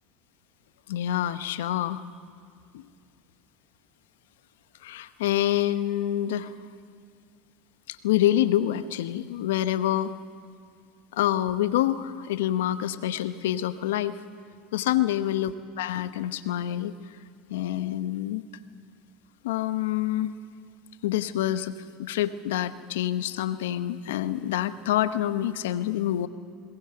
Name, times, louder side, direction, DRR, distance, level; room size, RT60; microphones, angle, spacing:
voice 1, 0.9-2.0 2.7-2.8 4.8-6.6 7.9-10.1 11.1-14.2 14.7-16.9 17.5-18.4 19.4-20.4 21.0-26.3, left 12 dB, 80° left, 13 dB, 0.9 m, -27 dB
21.5 x 19.0 x 7.9 m, 2.3 s
hypercardioid pair, 85°, 0 cm